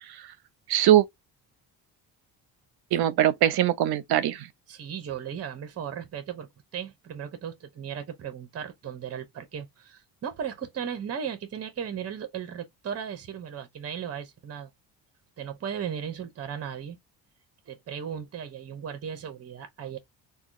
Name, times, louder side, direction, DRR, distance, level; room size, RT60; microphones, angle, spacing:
voice 1, 0.7-1.1 2.9-4.5, right 12 dB, 70° right, 0.7 m, -21 dB
voice 2, 4.7-14.7 15.4-17.0 17.7-20.0, right 8 dB, 35° right, 0.9 m, -36 dB
2.8 x 2.3 x 3.7 m
cardioid pair, 115°, 40 cm